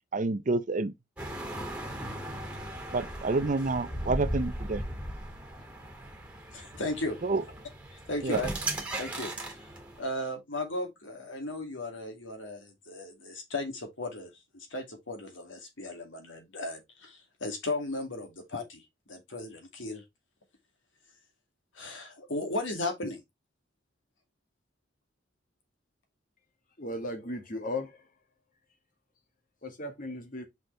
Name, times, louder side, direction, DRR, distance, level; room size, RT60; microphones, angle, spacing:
voice 1, 0.1-0.9 2.9-4.8 7.2-7.4 8.2-8.4, right 3 dB, 40° right, 0.6 m, -28 dB
sound 1, 1.2-10.0, right 1 dB, 5° right, 1.9 m, -37 dB
voice 2, 6.5-7.2 8.1-8.5 9.0-9.3 10.0-18.8 19.1-20.0 21.7-23.2, left 2 dB, 80° left, 2.4 m, -36 dB
voice 3, 26.8-28.1 29.6-30.5, left 1 dB, 45° left, 1.8 m, -36 dB
6.0 x 5.3 x 3.3 m
head